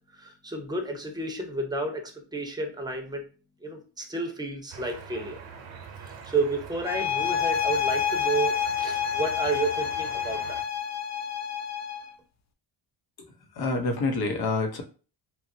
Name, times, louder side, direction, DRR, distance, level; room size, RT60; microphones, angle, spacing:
voice 1, 0.1-3.2 3.6-5.4 6.0-10.6, right 3 dB, 10° right, 2 dB, 0.6 m, -31 dB
sound 1, 4.7-10.6, right 6 dB, 75° right, 0.8 m, -44 dB
sound 2, 6.8-12.1, left 8 dB, 40° left, 0.5 m, -28 dB
voice 2, 13.6-14.8, left 3 dB, 55° left, 3 dB, 0.9 m, -27 dB
2.9 x 2.4 x 2.7 m, 0.36 s
cardioid pair, 95°, 45 cm